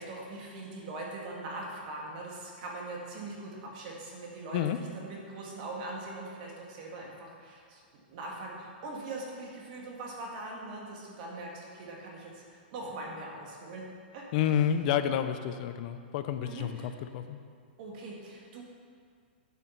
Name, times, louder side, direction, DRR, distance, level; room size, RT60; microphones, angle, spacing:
voice 1, 0.0-7.8 8.1-13.9 14.1-14.2 16.4-16.9 17.8-18.6, right 2 dB, 50° right, -2 dB, 2.0 m, -41 dB
voice 2, 14.3-17.4, left 9 dB, 50° left, 9 dB, 0.7 m, -29 dB
8.9 x 7.0 x 5.8 m, 2.1 s
hypercardioid pair, 135°, 6 cm